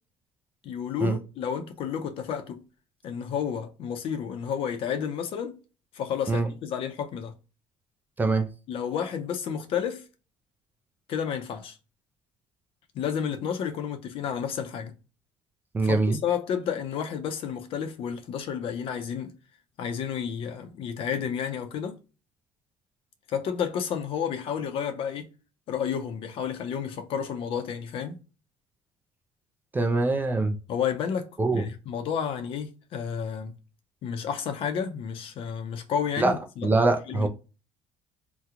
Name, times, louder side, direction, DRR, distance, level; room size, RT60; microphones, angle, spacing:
voice 1, 0.6-2.6 3.0-5.6 5.9-7.3 8.7-10.0 11.1-11.8 12.9-14.9 15.8-19.3 19.8-22.0 23.3-25.3 25.7-28.2 30.7-31.3 31.5-33.5 34.0-36.7 37.1-37.3, left 7 dB, 50° left, 0.6 m, -31 dB
voice 2, 15.7-16.2 29.7-30.6 31.4-31.6 36.2-36.3 36.6-37.3, right 3 dB, 15° right, 0.4 m, -23 dB
2.9 x 2.2 x 3.5 m
cardioid pair, 150°, 12 cm